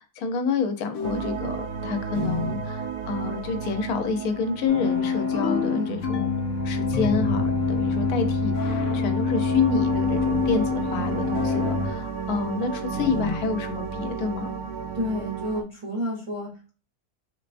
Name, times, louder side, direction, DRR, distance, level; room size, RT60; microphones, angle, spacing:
voice 1, 0.0-6.3 6.6-14.6, left 5 dB, 85° left, 7 dB, 1.2 m, -28 dB
sound 1, 0.9-1.5 2.1-2.7 5.3-6.5 6.9-7.6 8.5-9.0 11.3-11.9 12.9-13.5, left 5 dB, 65° left, 0.8 m, -31 dB
sound 2, 1.0-6.3 8.3-15.6, right 6 dB, 85° right, 1.1 m, -33 dB
sound 3, 4.7-11.9, left 4 dB, 15° left, 0.7 m, -26 dB
voice 2, 14.9-16.7, equal, 35° right, -3 dB, 0.6 m, -30 dB
3.7 x 3.3 x 2.4 m, 0.35 s
omnidirectional pair, 1.6 m